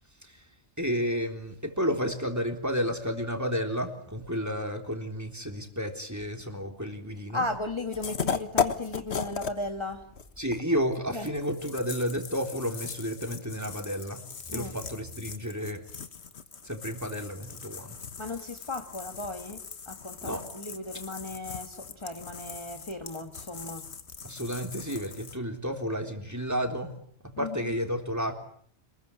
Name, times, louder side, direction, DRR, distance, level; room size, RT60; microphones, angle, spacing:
voice 1, 0.8-7.5 10.4-14.2 14.5-15.8 16.6-18.0 20.2-20.4 24.2-26.9 27.4-28.4, equal, 15° right, 3 dB, 3.7 m, -31 dB
voice 2, 7.3-10.1 11.1-11.3 14.5-14.8 18.2-23.9 27.3-27.7, left 2 dB, 25° left, 4 dB, 1.6 m, -36 dB
sound 1, 7.9-9.6 9.9-25.4, left 6 dB, 70° left, 1.6 m, -37 dB
28.0 x 21.5 x 8.6 m, 0.63 s
omnidirectional pair, 1.2 m